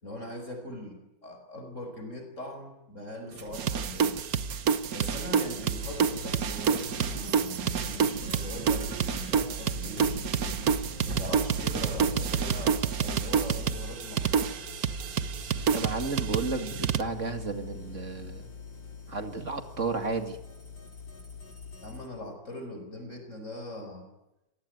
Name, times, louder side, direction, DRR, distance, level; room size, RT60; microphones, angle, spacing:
voice 1, 0.0-4.2 4.9-10.6 11.1-14.6 21.8-24.1, left 1 dB, 40° left, 5 dB, 5.2 m, -41 dB
sound 1, 3.3-12.7, right 5 dB, 85° right, 2.9 m, -41 dB
sound 2, 3.5-17.0, right 7 dB, 55° right, 1.4 m, -28 dB
sound 3, 5.7-22.1, left 5 dB, 75° left, 6.1 m, -45 dB
voice 2, 15.7-18.5 19.1-20.4, right 3 dB, 40° right, 8 dB, 2.5 m, -32 dB
26.5 x 19.0 x 9.4 m, 0.92 s
omnidirectional pair, 2.0 m